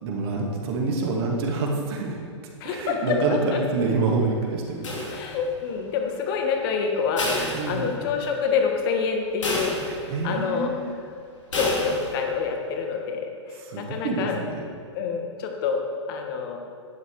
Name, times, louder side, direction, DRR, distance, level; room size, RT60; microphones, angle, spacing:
voice 1, 0.0-2.2 2.6-5.1 7.5-7.9 9.8-10.9 13.6-14.6, right 3 dB, 55° right, 0 dB, 2.3 m, -27 dB
voice 2, 2.6-3.6 5.1-9.7 10.0-10.7 11.5-13.3 13.8-14.3 14.9-16.6, left 5 dB, 50° left, 2 dB, 1.7 m, -27 dB
sound 1, 4.8-5.7 7.2-8.3 8.7-8.8 9.4-10.3 11.5-12.3, left 2 dB, 85° left, 2.8 m, -30 dB
11.5 x 8.3 x 4.8 m, 2.1 s
hypercardioid pair, 120°, 15 cm